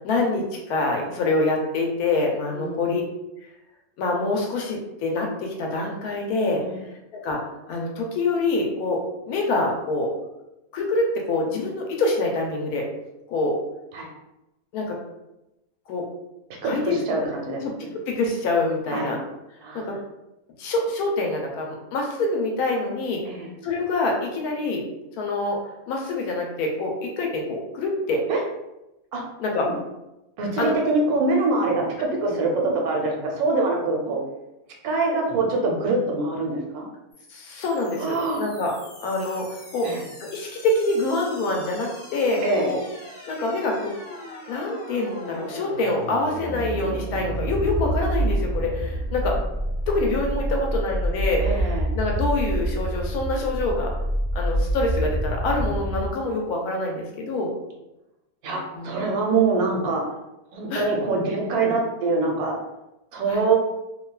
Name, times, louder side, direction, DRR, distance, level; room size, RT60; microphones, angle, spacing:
voice 1, 0.0-3.0 4.0-6.6 7.1-7.4 7.7-10.1 10.7-12.9 13.3-13.6 14.7-15.0 15.9-16.0 16.6-17.3 17.6-19.2 19.7-20.0 20.6-23.2 23.6-24.8 25.2-25.6 25.9-28.2 29.4-29.7 30.6-30.8 37.3-38.7 39.0-39.9 40.2-42.8 43.3-43.9 44.5-49.4 49.9-53.9 54.3-57.5 58.7-58.9 60.7-60.9 63.3-63.4, left 2 dB, 90° left, 0 dB, 1.1 m, -26 dB
voice 2, 16.6-17.9 18.9-19.2 19.6-19.9 23.2-23.5 28.3-28.4 29.1-29.2 30.4-34.2 34.8-36.9 38.0-38.4 39.8-40.0 42.4-42.7 51.4-51.9 58.4-60.0 60.5-62.5 63.1-63.6, right 3 dB, 90° right, 0 dB, 1.1 m, -24 dB
sound 1, 37.1-56.1, right 1 dB, 55° left, 0.8 m, -29 dB
2.6 x 2.3 x 2.2 m, 0.93 s
omnidirectional pair, 1.6 m